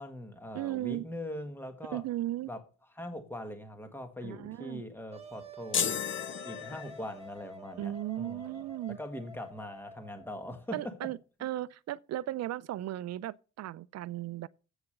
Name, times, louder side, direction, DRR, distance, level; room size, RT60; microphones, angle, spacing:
voice 1, 0.0-2.0 2.5-2.6 2.9-6.0 6.4-8.5 8.9-11.1 11.4-11.5, left 1 dB, 5° left, 1.6 m, -41 dB
voice 2, 0.5-1.0 1.9-2.5 4.2-4.8 7.8-9.0 10.7-14.5, right 14 dB, 55° right, 0.5 m, -36 dB
Wind instrument woodwind instrument, 5.1-10.6, right 2 dB, 20° right, 1.4 m, -49 dB
sound 1, 5.7-7.3, left 8 dB, 40° left, 0.8 m, -33 dB
8.2 x 6.8 x 6.6 m
cardioid pair, 115°, 31 cm